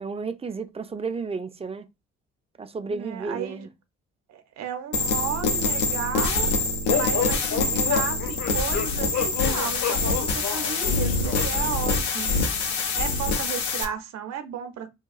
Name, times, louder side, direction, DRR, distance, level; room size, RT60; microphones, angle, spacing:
voice 1, 0.0-1.9 2.6-3.7, right 4 dB, 20° right, 0.4 m, -32 dB
voice 2, 2.8-3.7 4.3-6.5 6.9-12.3 13.0-14.9, right 8 dB, 55° right, 0.7 m, -34 dB
sound 1, 4.9-13.8, left 3 dB, 85° left, 0.6 m, -25 dB
sound 2, 6.9-11.7, left 7 dB, 60° left, 0.9 m, -29 dB
2.8 x 2.3 x 2.3 m
hypercardioid pair, 40°, 33 cm